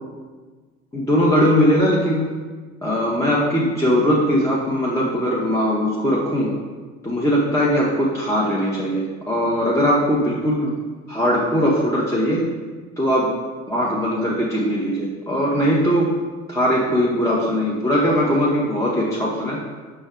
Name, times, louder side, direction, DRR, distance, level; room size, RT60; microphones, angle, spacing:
voice 1, 0.9-2.3 2.8-6.5 7.0-10.7 11.1-12.4 13.0-13.3 13.7-16.2 16.5-19.6, equal, 10° left, -5 dB, 0.5 m, -20 dB
5.2 x 2.2 x 3.4 m, 1.4 s
hypercardioid pair, 65°, 39 cm